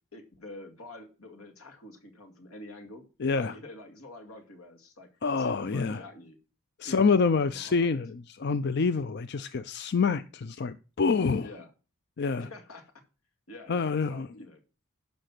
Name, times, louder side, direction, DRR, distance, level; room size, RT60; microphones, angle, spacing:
voice 1, 0.1-3.1 3.3-5.1 5.4-6.4 6.8-8.0 11.4-11.7 12.4-12.8 13.5-14.6, left 2 dB, 85° left, 2.3 m, -46 dB
voice 2, 3.2-3.5 5.2-6.0 6.8-11.5 12.2-12.5 13.7-14.3, left 4 dB, 50° left, 0.5 m, -27 dB
11.5 x 5.6 x 6.0 m
head